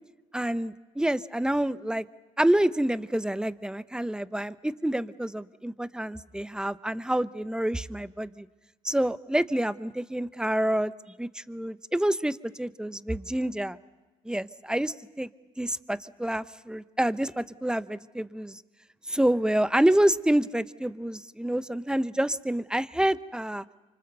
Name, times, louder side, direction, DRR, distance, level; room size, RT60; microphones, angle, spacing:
voice 1, 0.3-2.0 2.4-8.5 8.8-10.9 11.2-13.8 14.3-15.3 15.6-18.6 19.1-23.6, right 1 dB, 5° right, 15 dB, 0.9 m, -27 dB
28.5 x 25.0 x 6.9 m, 1.2 s
hypercardioid pair, 65°, 16 cm